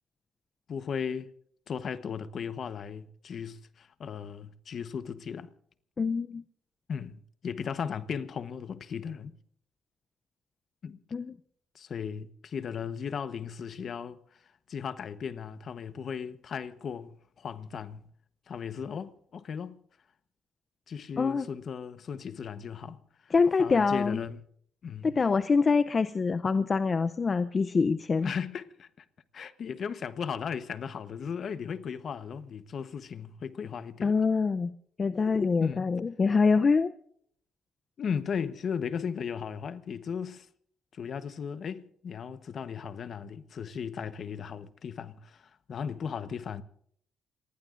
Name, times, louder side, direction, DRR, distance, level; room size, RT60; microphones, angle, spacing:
voice 1, 0.7-1.3 1.7-5.5 6.9-9.4 10.8-11.0 11.7-14.2 14.7-18.0 18.5-19.8 20.9-23.3 23.6-24.4 24.8-25.1 28.2-29.0 29.3-34.1 35.6-35.9 38.0-40.5 40.9-46.6, left 7 dB, 55° left, 1.0 m, -36 dB
voice 2, 6.0-6.4 11.1-11.3 21.2-21.5 23.3-24.2 25.0-28.3 34.0-34.7 35.0-36.9, left 4 dB, 35° left, 0.6 m, -25 dB
28.5 x 20.0 x 2.6 m
cardioid pair, 90°, 0 cm